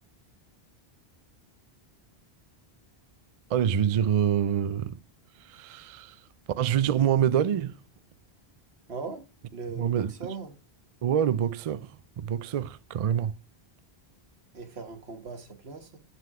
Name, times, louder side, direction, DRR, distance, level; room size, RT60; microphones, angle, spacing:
voice 1, 3.5-5.0 5.4-6.3 6.6-7.8 9.7-10.1 11.0-13.3, right 9 dB, 55° right, 0.4 m, -26 dB
voice 2, 8.9-9.3 9.5-10.6 14.5-16.0, right 4 dB, 85° right, 1.5 m, -39 dB
7.6 x 5.8 x 4.8 m
omnidirectional pair, 1.0 m